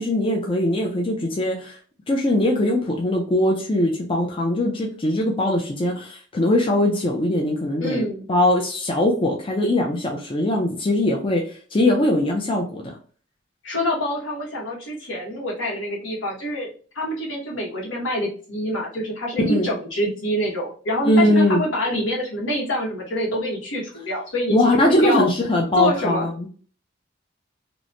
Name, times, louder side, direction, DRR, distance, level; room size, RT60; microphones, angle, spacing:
voice 1, 0.0-1.8 2.1-11.4 11.7-13.0 19.5-19.6 21.0-21.7 24.5-26.5, left 1 dB, 25° left, 0 dB, 0.4 m, -21 dB
voice 2, 7.8-8.2 13.6-16.7 16.9-25.3 25.7-26.3, left 1 dB, 75° left, -3 dB, 1.1 m, -26 dB
2.9 x 2.1 x 2.5 m, 0.41 s
head